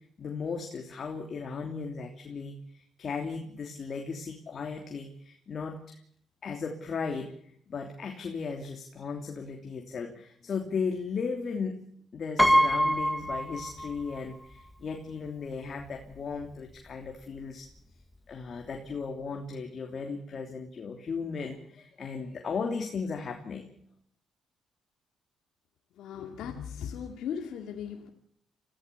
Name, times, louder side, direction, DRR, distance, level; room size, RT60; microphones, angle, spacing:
voice 1, 0.2-6.0 6.4-11.8 12.1-17.7 18.3-23.7, left 5 dB, 50° left, 3 dB, 3.1 m, -36 dB
Piano, 12.4-14.2 14.5-14.6 15.8-15.9 16.2-16.4, equal, 5° left, 1.7 m, -25 dB
voice 2, 26.0-28.1, left 8 dB, 80° left, 3 dB, 2.3 m, -37 dB
25.5 x 16.0 x 7.0 m, 0.64 s
cardioid pair, 90°, 0 cm